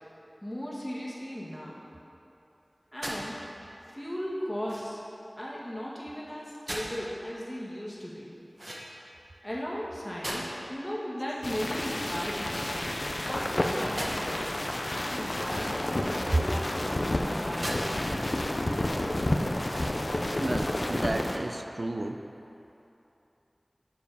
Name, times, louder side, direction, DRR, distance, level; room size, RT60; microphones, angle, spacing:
voice 1, 0.4-1.8 2.9-3.4 3.9-5.0 5.4-8.3 9.4-12.8 13.2-14.5 14.9-17.9, equal, 20° left, -5 dB, 1.6 m, -37 dB
sound 1, 3.0-3.3 4.7-5.1 6.7-7.0 8.6-9.2 10.2-10.7 11.9-12.8 14.0-14.2 15.4-16.0 17.6-17.8 18.4-18.5 19.6-20.1, right 1 dB, 45° right, 1.0 m, -38 dB
sound 2, 11.4-21.4, left 1 dB, 70° left, 0.5 m, -30 dB
voice 2, 20.4-22.2, right 2 dB, 75° right, 6 dB, 0.4 m, -31 dB
7.1 x 4.9 x 5.3 m, 2.9 s
wide cardioid pair, 40°, 0 cm